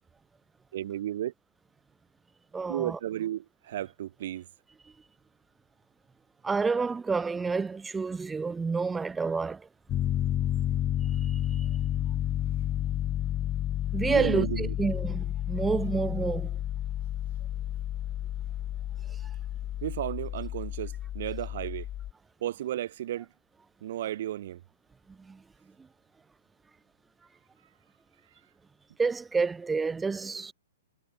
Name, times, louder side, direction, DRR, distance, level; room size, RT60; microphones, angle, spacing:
voice 1, 0.7-1.3 2.7-4.5 14.1-14.8 19.8-21.9 22.4-23.3 23.8-24.6, right 12 dB, 50° right, 4.9 m, -33 dB
voice 2, 2.5-3.0 6.4-9.7 11.2-11.7 13.9-16.5 25.2-25.4 29.0-30.5, right 4 dB, 10° right, 0.5 m, -29 dB
Piano, 9.9-22.1, left 12 dB, 25° left, 1.4 m, -31 dB
figure-of-eight pair, 115°, 0 cm